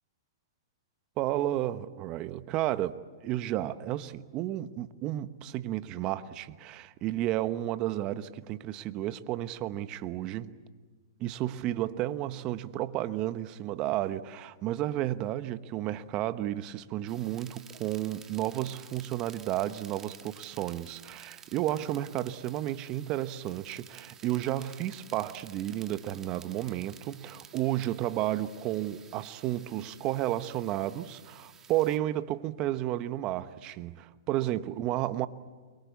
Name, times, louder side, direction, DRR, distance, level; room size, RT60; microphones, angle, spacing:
voice 1, 1.2-10.5 11.2-35.3, right 14 dB, 35° right, 1.1 m, -32 dB
sound 1, 17.1-32.0, right 7 dB, 20° right, 1.7 m, -52 dB
29.0 x 23.0 x 8.4 m
hypercardioid pair, 130°, 2 cm